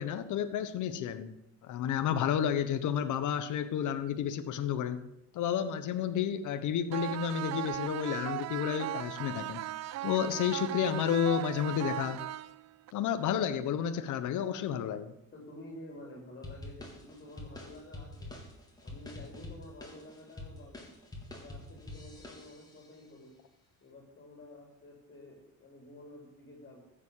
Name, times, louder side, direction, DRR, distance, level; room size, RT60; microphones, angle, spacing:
voice 1, 0.0-1.3 1.6-5.0 5.3-12.2 12.9-15.1, left 9 dB, 75° left, 10 dB, 1.2 m, -31 dB
sound 1, 6.9-12.9, right 14 dB, 60° right, 0.6 m, -37 dB
voice 2, 15.3-18.4 18.8-20.8 21.3-23.4 23.8-26.8, left 1 dB, 35° left, -2 dB, 4.1 m, -50 dB
sound 2, 16.4-22.9, left 2 dB, 10° left, 3.4 m, -46 dB
14.5 x 7.4 x 8.4 m, 0.81 s
cardioid pair, 125°, 30 cm